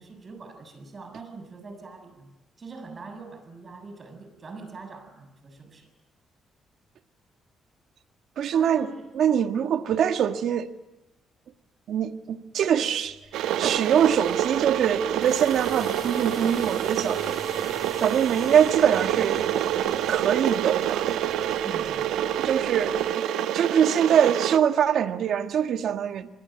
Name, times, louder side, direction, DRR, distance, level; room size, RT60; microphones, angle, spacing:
voice 1, 0.0-5.9 8.5-9.1 9.4-9.7 12.7-13.0 21.6-22.1, right 3 dB, 35° right, 7.2 m, -43 dB
voice 2, 8.4-8.9 9.1-10.7 11.9-13.1 13.6-17.2 18.0-19.4 20.1-21.1 22.4-23.0 23.5-26.3, right 8 dB, 70° right, 1.6 m, -23 dB
sound 1, 13.0-23.1, left 4 dB, 35° left, 3.3 m, -46 dB
Water / Boiling, 13.3-24.6, right 11 dB, 85° right, 1.2 m, -27 dB
27.0 x 21.5 x 9.3 m
cardioid pair, 90°, 0 cm